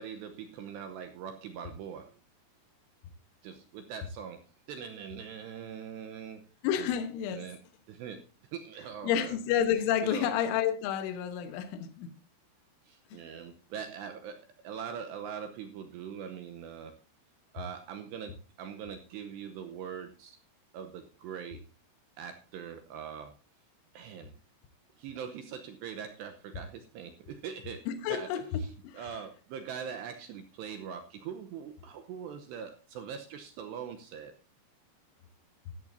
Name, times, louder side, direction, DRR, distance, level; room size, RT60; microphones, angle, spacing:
voice 1, 0.0-2.1 3.4-4.4 4.7-6.4 6.8-6.9 7.3-7.6 7.9-8.2 8.5-9.4 10.0-10.3 12.8-17.0 17.5-20.4 20.7-21.6 22.2-23.3 23.9-24.3 25.0-27.8 28.1-28.3 28.9-34.3, right 7 dB, 80° right, 2.7 m, -42 dB
voice 2, 6.6-7.5 9.0-12.1 13.1-13.2 27.9-29.1, left 9 dB, 80° left, 3.6 m, -30 dB
15.5 x 13.0 x 2.7 m
omnidirectional pair, 5.6 m